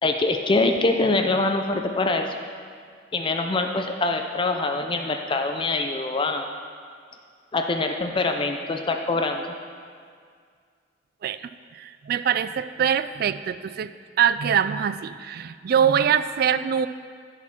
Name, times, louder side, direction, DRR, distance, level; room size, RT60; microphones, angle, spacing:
voice 1, 0.0-2.3 3.1-6.5 7.5-9.5, left 3 dB, 25° left, 4 dB, 0.5 m, -24 dB
voice 2, 11.7-13.9 14.2-16.9, right 8 dB, 55° right, 14 dB, 0.3 m, -23 dB
10.5 x 5.1 x 5.8 m, 2.1 s
head